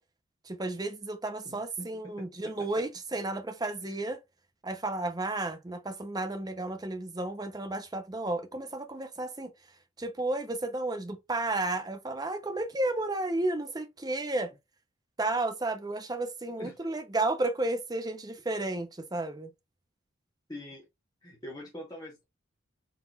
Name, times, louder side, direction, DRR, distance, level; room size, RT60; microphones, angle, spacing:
voice 1, 0.5-4.2 4.6-9.5 10.0-14.5 15.2-19.5, right 2 dB, 20° right, 0.6 m, -32 dB
voice 2, 1.4-2.1 2.6-2.8 3.8-3.9 16.5-16.8 20.5-20.9 21.2-22.2, left 1 dB, 20° left, 0.9 m, -44 dB
4.2 x 3.9 x 2.2 m
head